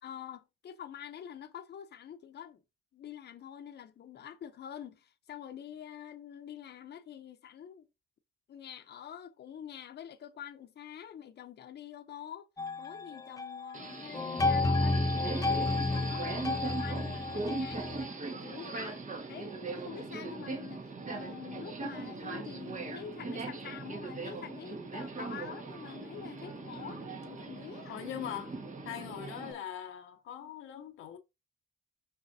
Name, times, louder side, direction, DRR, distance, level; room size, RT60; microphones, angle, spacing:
voice 1, 0.0-2.6 2.9-7.9 8.5-12.5 12.8-17.9 18.3-19.0 19.3-28.0, left 9 dB, 60° left, 0.9 m, -46 dB
sound 1, 12.6-13.8 14.1-18.1, left 2 dB, 15° left, 0.7 m, -31 dB
Subway metro underground, 13.7-29.5, right 3 dB, 40° right, 1.7 m, -40 dB
Bowed string instrument, 19.2-24.7, right 1 dB, 80° right, 3.5 m, -56 dB
voice 2, 27.9-28.6 28.8-31.2, left 10 dB, 85° left, 1.0 m, -41 dB
6.7 x 5.6 x 2.8 m
cardioid pair, 90°, 20 cm